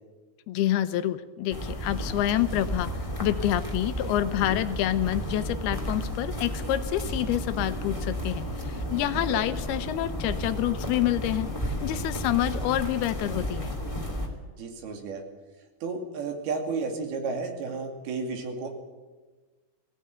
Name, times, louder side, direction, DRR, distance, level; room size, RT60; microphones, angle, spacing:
voice 1, 0.5-2.9 3.2-13.8, left 13 dB, 85° left, 12 dB, 2.8 m, -27 dB
sound 1, 1.5-14.3, equal, 10° left, 2.1 m, -33 dB
voice 2, 9.1-9.5 14.6-15.2 15.8-18.7, right 4 dB, 75° right, 4 dB, 4.3 m, -32 dB
20.0 x 16.5 x 9.2 m, 1.3 s
omnidirectional pair, 4.5 m